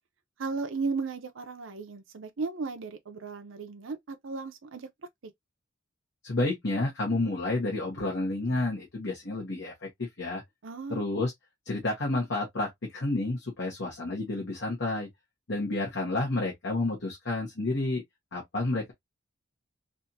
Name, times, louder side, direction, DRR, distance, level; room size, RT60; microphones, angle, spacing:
voice 1, 0.4-4.9 10.6-11.1, right 4 dB, 70° right, 0.6 m, -35 dB
voice 2, 6.2-10.4 10.9-11.3 11.6-15.1 15.5-18.0 18.3-18.9, left 2 dB, 60° left, 1.3 m, -30 dB
3.4 x 2.7 x 2.7 m
head